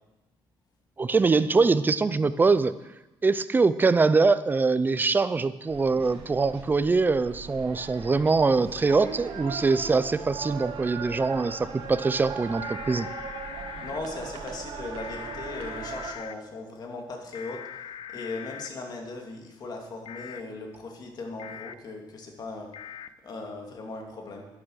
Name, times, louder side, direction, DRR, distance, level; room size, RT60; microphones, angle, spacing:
voice 1, 1.0-2.7 3.2-13.1, right 4 dB, 20° right, 14 dB, 0.5 m, -23 dB
sound 1, 5.7-16.1, right 5 dB, 80° right, 1.8 m, -39 dB
sound 2, 12.6-14.0 15.0-16.3 17.3-18.7 20.1-20.4 21.4-21.7 22.7-23.1, left 9 dB, 70° left, 0.6 m, -41 dB
voice 2, 13.8-17.6 18.1-22.7 23.2-24.5, left 3 dB, 50° left, 1 dB, 2.6 m, -38 dB
11.5 x 10.5 x 6.5 m, 1.0 s
cardioid pair, 130°, 9 cm